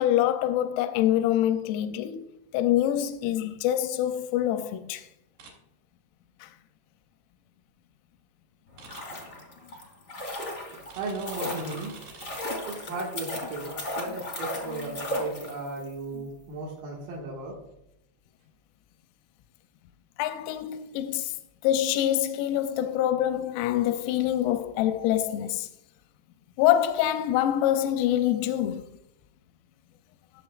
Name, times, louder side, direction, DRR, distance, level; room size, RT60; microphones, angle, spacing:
voice 1, 0.0-2.3 2.5-5.1 6.4-6.5 20.2-21.4 21.6-25.7 26.6-28.9, left 12 dB, 90° left, 3.4 m, -25 dB
sound 1, 5.4-5.5 8.8-9.0 10.9-12.4, right 4 dB, 55° right, 4.3 m, -47 dB
sound 2, 8.7-15.9 16.1-16.2, left 1 dB, 50° left, 0.9 m, -36 dB
voice 2, 10.7-12.4 12.6-17.6, right 3 dB, 75° right, 4.2 m, -36 dB
18.5 x 7.4 x 2.4 m
omnidirectional pair, 6.0 m